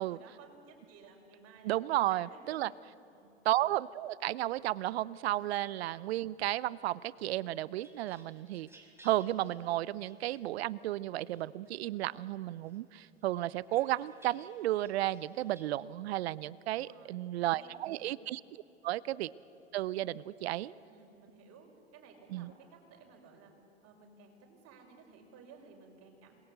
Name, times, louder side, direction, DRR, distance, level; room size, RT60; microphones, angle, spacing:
voice 1, 0.0-1.8 2.1-2.8 3.1-3.4 16.7-18.2 19.0-19.1 20.8-23.5 23.8-26.3, right 5 dB, 50° right, 1 dB, 6.2 m, -57 dB
voice 2, 1.6-2.7 3.4-8.7 9.0-18.4 18.8-19.3 19.7-20.7 22.3-22.5, right 15 dB, 75° right, 21 dB, 0.7 m, -33 dB
sound 1, 7.4-10.9 11.3-12.2 12.6-15.7, right 2 dB, 10° right, 5.3 m, -62 dB
27.0 x 21.5 x 8.2 m, 3.0 s
hypercardioid pair, 80°, 31 cm